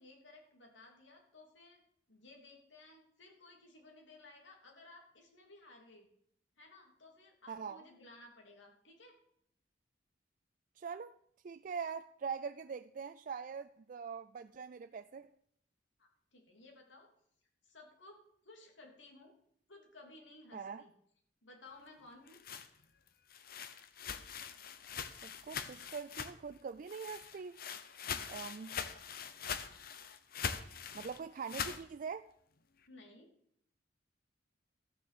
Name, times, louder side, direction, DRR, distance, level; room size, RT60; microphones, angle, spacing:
voice 1, 0.0-1.8 2.1-6.1 6.6-9.1 16.0-17.1 17.6-18.2 18.4-19.3 19.7-20.9 21.4-22.4 28.1-28.4 32.9-33.3, left 2 dB, 85° left, 3.0 m, -57 dB
voice 2, 7.5-7.9 10.8-11.1 11.4-15.3 20.5-20.8 25.2-27.6 28.3-28.8 30.9-32.3, right 6 dB, 45° right, 0.4 m, -43 dB
sound 1, 22.1-26.6 26.9-31.8, left 7 dB, 55° left, 0.9 m, -43 dB
14.0 x 7.0 x 6.8 m
head